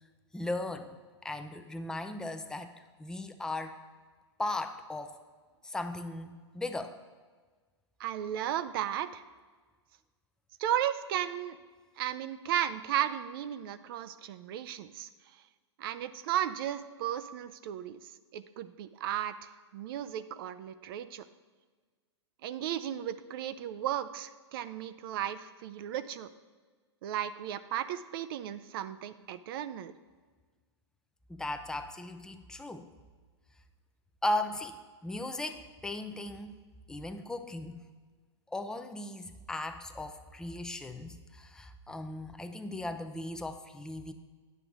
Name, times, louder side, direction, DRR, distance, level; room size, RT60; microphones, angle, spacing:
voice 1, 0.3-1.0 1.2-2.7 3.0-3.8 4.4-5.2 5.6-7.0 31.3-32.9 34.2-36.6 36.9-37.8 38.5-44.1, left 2 dB, 5° left, 8 dB, 0.5 m, -37 dB
voice 2, 8.0-9.2 10.6-11.6 12.0-15.1 15.8-18.0 18.3-21.2 22.4-26.3 27.0-29.9, right 11 dB, 55° right, 13 dB, 0.5 m, -35 dB
9.3 x 6.7 x 3.7 m, 1.4 s
hypercardioid pair, 115°, 15 cm